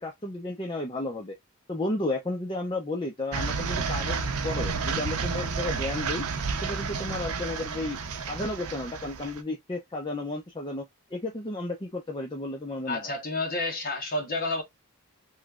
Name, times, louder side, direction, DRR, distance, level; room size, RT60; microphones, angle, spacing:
voice 1, 0.0-1.3 1.7-6.3 6.6-10.8 11.1-13.1, left 2 dB, 20° left, 0.5 m, -33 dB
sound 1, 3.3-9.4, right 5 dB, 80° right, 0.6 m, -31 dB
voice 2, 12.9-14.6, left 2 dB, 40° left, 1.1 m, -30 dB
3.2 x 3.1 x 2.3 m
head